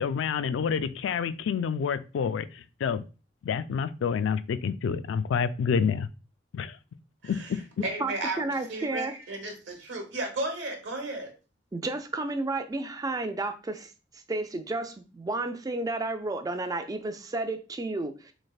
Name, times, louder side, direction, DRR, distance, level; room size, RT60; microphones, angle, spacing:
voice 1, 0.0-3.0 3.4-6.1 6.5-6.8 7.2-7.6, left 6 dB, 85° left, 14 dB, 0.3 m, -28 dB
voice 2, 7.2-11.3, right 2 dB, 80° right, 3 dB, 1.0 m, -34 dB
voice 3, 8.0-9.1 11.7-13.9 14.3-18.3, right 2 dB, 20° right, 8 dB, 0.3 m, -32 dB
4.1 x 3.3 x 2.3 m, 0.33 s
head